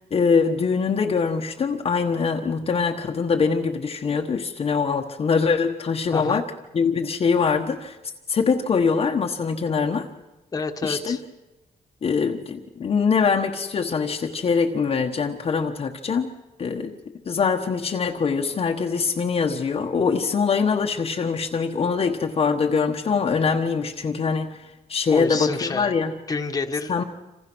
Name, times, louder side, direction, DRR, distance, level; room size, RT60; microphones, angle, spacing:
voice 1, 0.1-6.4 6.7-8.0 8.3-10.1 10.8-11.2 12.0-16.3 16.6-16.9 17.3-24.6 24.9-26.1 26.9-27.0, left 5 dB, 40° left, 2 dB, 1.3 m, -23 dB
voice 2, 6.1-6.4 10.5-11.2 25.1-25.9 26.3-27.0, left 4 dB, 25° left, 5 dB, 1.5 m, -28 dB
27.5 x 27.0 x 6.2 m, 1.0 s
wide cardioid pair, 165°, 15 cm